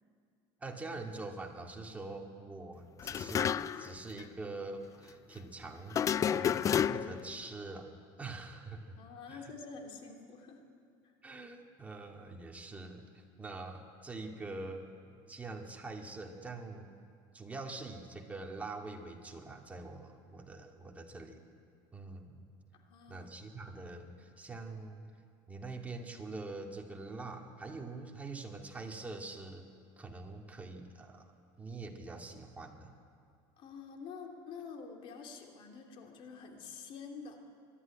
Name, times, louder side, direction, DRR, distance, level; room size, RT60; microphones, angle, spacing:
voice 1, 0.6-7.9 8.2-9.0 9.3-9.5 11.2-16.9 17.3-21.4 21.9-22.5 23.1-25.1 25.5-29.7 30.0-31.3 31.6-32.9, right 3 dB, 15° right, 1 dB, 2.2 m, -44 dB
sound 1, 3.0-3.9 4.2-4.3 5.9-7.3, left 8 dB, 30° left, 0.4 m, -30 dB
voice 2, 9.0-10.6 11.0-11.1 22.7-23.5 33.6-37.4, left 5 dB, 55° left, 3 dB, 2.9 m, -48 dB
24.0 x 11.5 x 9.9 m, 2.4 s
cardioid pair, 125°, 11 cm